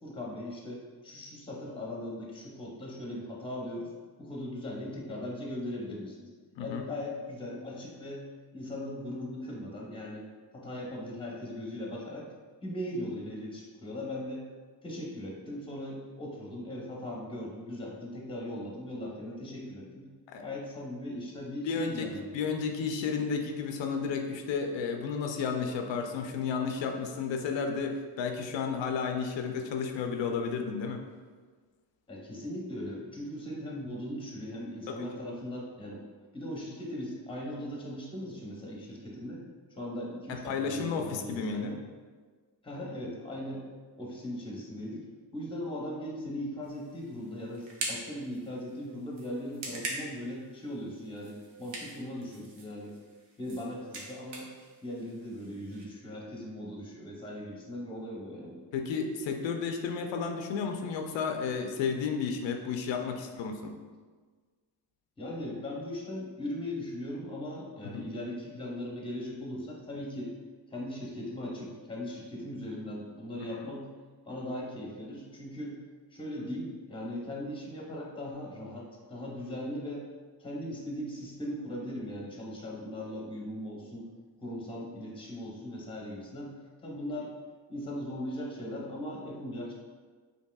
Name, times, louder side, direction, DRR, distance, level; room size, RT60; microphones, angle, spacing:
voice 1, 0.0-3.9 4.2-6.3 6.6-8.2 8.5-10.3 10.5-12.3 12.6-14.4 14.8-20.1 20.4-22.3 32.1-36.0 36.3-39.4 39.7-41.7 42.6-43.6 44.0-45.0 45.3-52.9 53.4-54.5 54.8-58.6 65.2-70.3 70.7-73.9 74.3-75.8 76.1-80.1 80.4-84.0 84.4-86.5 86.8-87.3 87.7-89.7, left 1 dB, 10° left, -3 dB, 0.7 m, -39 dB
voice 2, 21.7-22.0 22.3-31.0 34.9-35.1 40.5-41.7 58.7-63.7 67.9-68.1 73.5-73.6, left 5 dB, 85° left, 4 dB, 0.5 m, -32 dB
sound 1, 46.6-55.8, right 2 dB, 75° right, 0.9 m, -44 dB
5.3 x 2.9 x 2.3 m, 1.5 s
cardioid pair, 130°, 44 cm